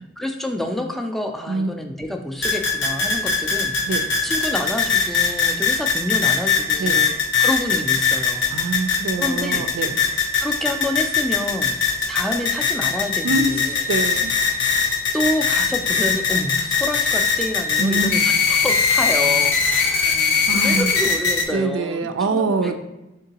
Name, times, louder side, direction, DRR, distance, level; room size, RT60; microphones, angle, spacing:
voice 1, 0.0-8.6 9.2-9.7 10.4-11.8 12.1-13.8 14.5-14.6 15.1-22.7, left 1 dB, ahead, 3 dB, 0.3 m, -28 dB
sound 1, 2.4-21.4, left 5 dB, 70° left, 0.6 m, -21 dB
voice 2, 8.5-10.0 13.2-14.3 17.8-18.1 20.5-20.9 21.5-22.7, right 3 dB, 85° right, 9 dB, 0.4 m, -24 dB
3.7 x 3.7 x 2.8 m, 1.0 s
head